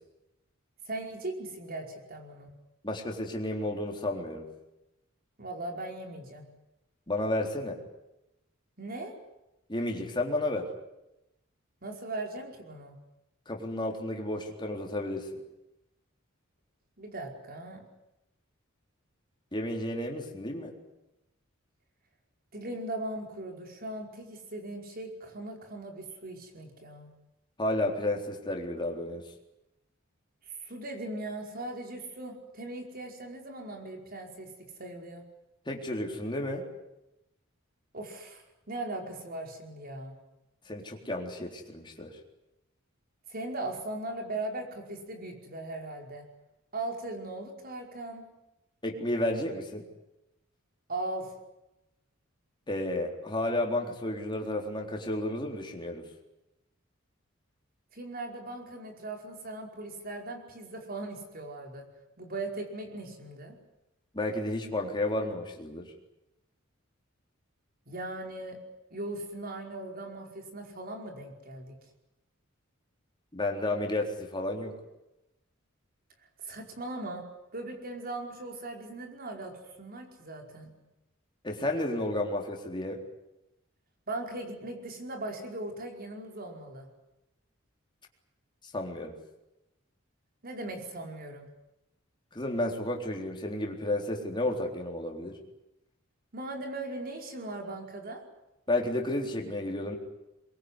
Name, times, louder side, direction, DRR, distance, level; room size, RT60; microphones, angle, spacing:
voice 1, 0.9-2.5 5.4-6.4 8.8-9.1 11.8-12.9 17.0-17.8 22.5-27.1 30.4-35.2 37.9-40.1 43.3-46.3 46.7-48.2 50.9-51.4 57.9-61.8 62.2-63.5 67.9-68.6 68.9-71.8 76.4-77.2 77.5-80.7 84.1-86.9 90.4-91.5 96.3-98.2, right 2 dB, 45° right, 3 dB, 5.1 m, -39 dB
voice 2, 2.8-4.5 7.1-7.8 9.7-10.7 13.5-15.4 19.5-20.7 27.6-29.2 35.7-36.7 40.7-42.1 48.8-49.8 52.7-56.0 64.1-65.9 73.3-74.7 81.4-83.0 88.7-89.1 92.3-95.4 98.7-100.0, left 1 dB, 25° left, 1 dB, 3.9 m, -32 dB
23.0 x 22.5 x 9.9 m, 0.91 s
head